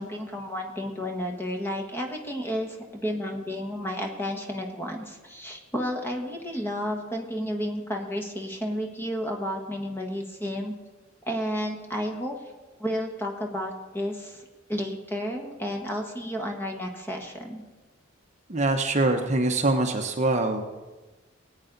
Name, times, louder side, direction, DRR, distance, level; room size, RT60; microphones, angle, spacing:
voice 1, 0.0-10.7 11.3-12.4 12.8-17.6, equal, 10° left, 2 dB, 1.3 m, -32 dB
voice 2, 18.5-20.7, right 2 dB, 35° right, 4 dB, 0.8 m, -24 dB
19.0 x 8.9 x 3.9 m, 1.2 s
head